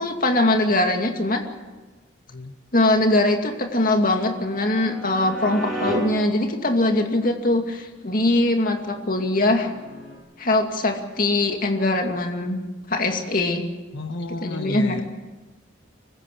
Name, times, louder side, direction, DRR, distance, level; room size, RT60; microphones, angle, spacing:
voice 1, 0.0-1.4 2.7-9.7 10.4-12.6 12.9-13.7 14.4-15.0, left 2 dB, 45° left, 4 dB, 2.5 m, -22 dB
sound 1, 3.1-5.9 8.9-10.2, right 1 dB, ahead, 8.0 m, -36 dB
voice 2, 13.9-15.0, left 2 dB, 70° left, 5 dB, 1.2 m, -31 dB
24.5 x 15.5 x 8.5 m, 1.3 s
head